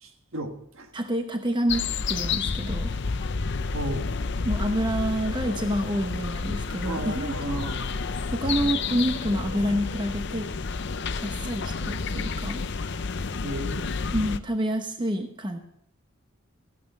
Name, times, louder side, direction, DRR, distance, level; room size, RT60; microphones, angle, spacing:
voice 1, 0.0-0.9 3.7-4.1 6.8-8.0 13.4-14.0 15.0-15.1, right 1 dB, 70° right, 5 dB, 1.5 m, -35 dB
voice 2, 0.9-2.9 4.4-7.6 8.3-10.5 11.2-12.6 14.1-15.6, equal, 20° right, 5 dB, 0.8 m, -28 dB
sound 1, 1.7-14.4, left 4 dB, 55° left, 0.6 m, -30 dB
14.5 x 9.3 x 5.4 m, 0.73 s
head